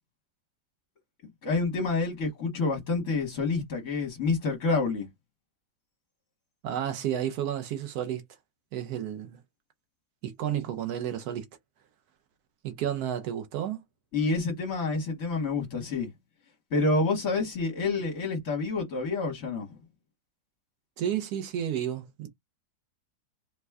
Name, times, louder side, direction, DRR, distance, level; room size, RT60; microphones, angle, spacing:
voice 1, 1.4-5.1 14.1-16.1 16.7-19.7, left 3 dB, 55° left, 1.4 m, -28 dB
voice 2, 6.6-8.2 8.7-9.4 10.2-11.5 12.6-13.8 21.0-22.3, right 10 dB, 70° right, 1.0 m, -31 dB
3.3 x 2.2 x 3.4 m
omnidirectional pair, 2.0 m